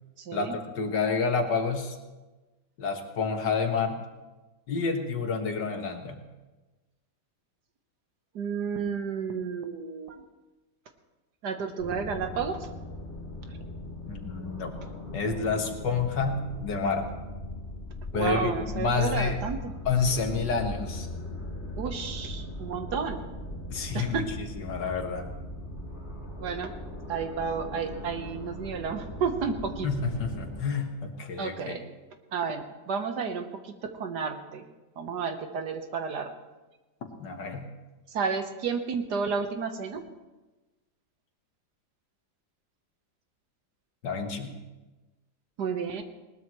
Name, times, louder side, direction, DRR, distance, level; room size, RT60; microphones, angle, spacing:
voice 1, 0.2-0.6 8.3-10.2 11.4-12.7 18.1-19.7 21.8-23.2 23.9-24.2 26.4-26.7 27.1-29.9 31.4-32.0 32.3-34.6 35.0-36.3 38.1-40.0 45.6-46.0, right 6 dB, 70° right, 7 dB, 1.7 m, -31 dB
voice 2, 0.8-2.0 2.8-4.0 4.7-6.2 14.1-14.7 15.1-17.1 18.1-19.4 19.9-21.1 23.7-24.2 24.6-25.3 29.8-31.8 37.2-37.7 44.0-44.5, left 5 dB, 75° left, 4 dB, 2.2 m, -29 dB
sound 1, 11.8-30.6, left 1 dB, 35° left, 2.8 m, -39 dB
20.0 x 19.0 x 3.1 m, 1.1 s
omnidirectional pair, 1.9 m